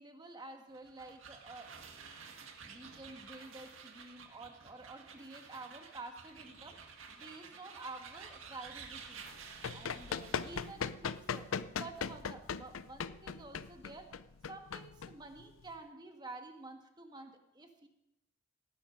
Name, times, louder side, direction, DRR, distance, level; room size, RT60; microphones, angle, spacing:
voice 1, 0.0-1.7 2.6-9.3 9.7-14.1 14.5-17.9, right 2 dB, 20° right, 4 dB, 1.5 m, -50 dB
sound 1, 0.7-10.8, right 5 dB, 80° right, 1.8 m, -52 dB
Run, 9.3-15.7, left 6 dB, 90° left, 0.5 m, -39 dB
18.0 x 11.0 x 5.1 m, 0.88 s
head